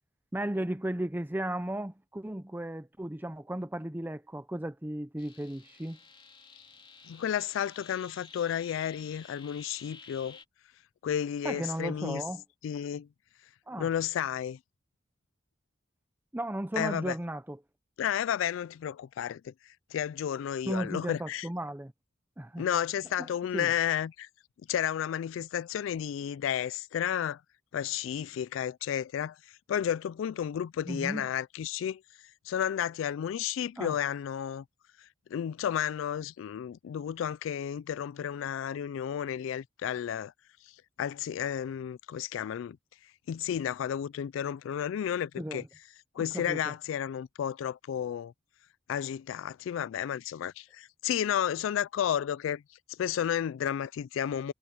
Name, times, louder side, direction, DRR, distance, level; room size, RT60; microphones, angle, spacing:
voice 1, 0.3-6.0 11.4-12.4 13.7-13.9 16.3-17.6 20.7-21.9 22.4-22.7 23.2-23.3 23.5-23.7 30.9-31.3 33.8-33.9 45.4-45.6 46.2-46.6, right 1 dB, 10° right, 0.6 m, -35 dB
sound 1, 5.2-10.5, left 5 dB, 25° left, 2.8 m, -53 dB
voice 2, 7.1-10.4 11.0-12.2 12.6-13.1 13.8-14.6 16.8-17.2 18.0-21.5 22.6-24.3 24.7-27.4 27.7-29.4 29.7-32.0 32.5-34.6 35.0-40.3 40.6-40.7 41.0-42.8 43.3-45.6 46.2-48.3 48.9-52.6 52.9-54.5, left 9 dB, 80° left, 0.3 m, -32 dB
head